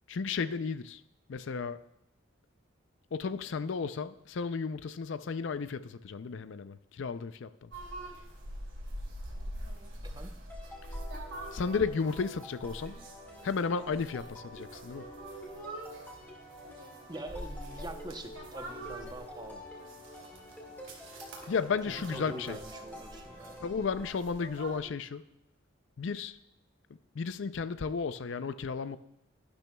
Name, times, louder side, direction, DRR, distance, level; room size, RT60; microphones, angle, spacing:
voice 1, 0.1-1.0 1.3-1.8 3.1-7.7 11.5-13.0 13.4-15.1 21.5-22.6 23.6-25.3 26.0-26.4 27.1-29.0, left 5 dB, 65° left, 0.4 m, -33 dB
sound 1, 7.7-24.8, right 1 dB, 65° right, 2.5 m, -45 dB
sound 2, 10.5-24.2, equal, 10° left, 1.8 m, -49 dB
voice 2, 17.1-19.7 21.9-23.8, right 1 dB, 20° right, 0.7 m, -44 dB
12.0 x 11.5 x 2.3 m
head